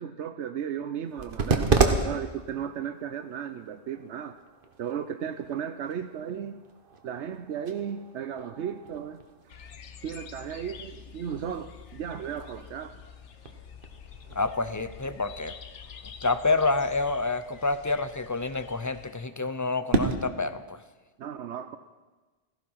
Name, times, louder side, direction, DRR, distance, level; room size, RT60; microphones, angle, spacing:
voice 1, 0.0-4.4 4.8-6.6 7.0-9.2 10.0-13.0 21.2-21.8, right 8 dB, 80° right, 9 dB, 1.0 m, -35 dB
sound 1, 1.0-20.1, right 4 dB, 50° right, 1.4 m, -34 dB
sound 2, 9.5-19.2, left 7 dB, 90° left, 1.2 m, -47 dB
voice 2, 14.3-15.5 16.2-20.8, left 3 dB, 20° left, 12 dB, 0.5 m, -28 dB
16.5 x 15.5 x 5.6 m, 1.2 s
omnidirectional pair, 1.2 m